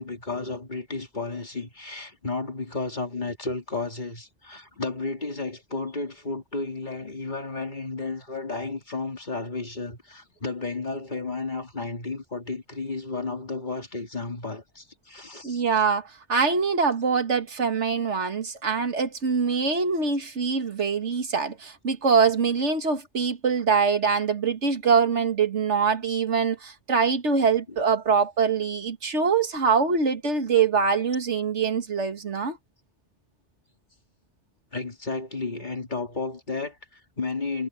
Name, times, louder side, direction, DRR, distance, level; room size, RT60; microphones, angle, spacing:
voice 1, 0.0-15.6 27.7-27.8 34.7-37.7, left 3 dB, 40° left, 2.9 m, -33 dB
voice 2, 15.4-32.6, right 5 dB, 85° right, 2.1 m, -24 dB
omnidirectional pair, 1.2 m